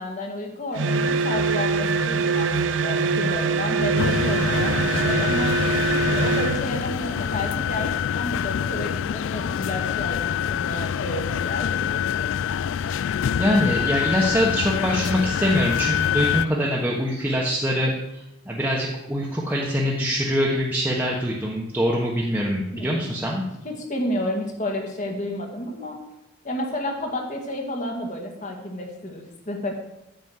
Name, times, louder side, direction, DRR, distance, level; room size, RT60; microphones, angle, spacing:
voice 1, 0.0-5.6 6.0-12.4 22.7-23.0 23.6-26.0 26.4-29.7, left 1 dB, 40° left, 2 dB, 1.9 m, -31 dB
sound 1, 0.7-6.7, right 4 dB, 70° right, 0.6 m, -23 dB
sound 2, 4.0-16.5, left 9 dB, 75° left, 0.3 m, -26 dB
voice 2, 13.4-23.4, equal, 10° right, -3 dB, 1.2 m, -24 dB
9.4 x 6.1 x 8.0 m, 0.92 s
head